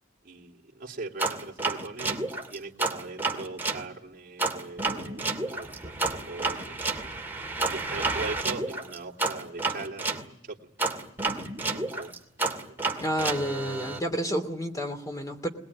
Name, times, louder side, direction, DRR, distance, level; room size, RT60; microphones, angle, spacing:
voice 1, 0.2-7.1 7.7-10.7 11.7-12.1 12.7-12.9, right 3 dB, 45° right, -1 dB, 3.1 m, -40 dB
sound 1, 1.2-3.8 4.4-10.2 10.8-14.0, right 3 dB, 10° right, 2.5 m, -30 dB
voice 2, 13.0-15.5, equal, 20° left, 5 dB, 2.9 m, -30 dB
23.0 x 20.0 x 9.8 m, 0.76 s
head